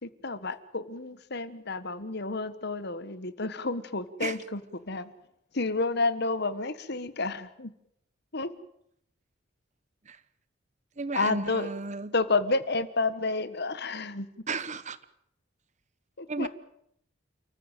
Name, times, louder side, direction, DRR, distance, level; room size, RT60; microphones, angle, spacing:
voice 1, 0.0-5.1 5.5-7.7 8.3-8.5 11.1-11.7 12.1-14.3 16.2-16.5, left 3 dB, 55° left, 14 dB, 1.5 m, -30 dB
voice 2, 11.0-12.1 14.5-15.0 16.3-16.5, right 3 dB, 40° right, 16 dB, 1.1 m, -33 dB
29.5 x 14.5 x 9.2 m, 0.74 s
head